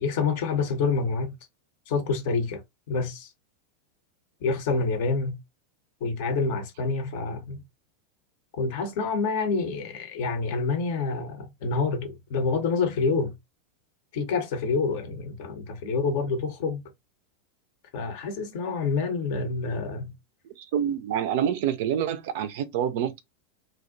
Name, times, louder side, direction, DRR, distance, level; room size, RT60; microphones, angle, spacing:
voice 1, 0.0-1.3 1.9-2.6 2.9-3.3 4.4-5.4 6.0-7.6 8.5-13.3 14.1-16.8 17.9-20.1, left 4 dB, 50° left, 0.6 m, -27 dB
voice 2, 20.7-23.2, right 9 dB, 55° right, 0.4 m, -27 dB
2.4 x 2.1 x 2.4 m
figure-of-eight pair, 90°, 0 cm